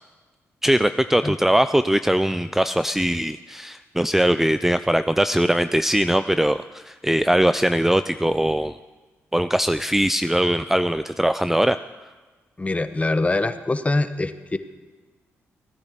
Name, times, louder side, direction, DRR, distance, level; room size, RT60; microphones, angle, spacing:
voice 1, 0.6-8.8 9.3-11.8, right 1 dB, 5° right, 12 dB, 0.5 m, -21 dB
voice 2, 12.6-14.6, left 2 dB, 25° left, 11 dB, 1.1 m, -23 dB
17.0 x 9.9 x 8.0 m, 1.3 s
cardioid pair, 60°, 6 cm